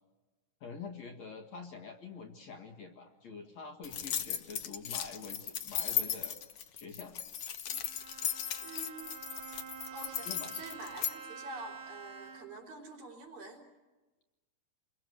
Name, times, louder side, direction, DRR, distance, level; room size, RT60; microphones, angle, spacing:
voice 1, 0.6-6.4 6.7-7.1 10.2-10.6, left 5 dB, 55° left, 3 dB, 2.5 m, -46 dB
sound 1, 3.8-11.1, left 10 dB, 70° left, 1.4 m, -36 dB
Bowed string instrument, 7.7-12.7, right 6 dB, 40° right, 2.6 m, -48 dB
voice 2, 8.6-9.1 9.9-13.7, right 2 dB, 60° right, 1 dB, 5.4 m, -47 dB
28.5 x 23.0 x 7.8 m, 1.2 s
omnidirectional pair, 4.4 m